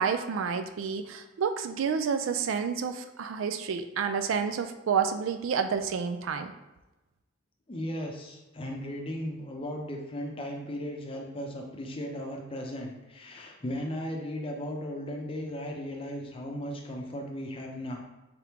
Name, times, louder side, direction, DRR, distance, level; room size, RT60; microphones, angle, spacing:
voice 1, 0.0-6.5, right 6 dB, 90° right, 8 dB, 0.3 m, -29 dB
voice 2, 7.7-18.0, equal, 30° left, 1 dB, 0.5 m, -36 dB
3.6 x 3.5 x 2.9 m, 1.1 s
head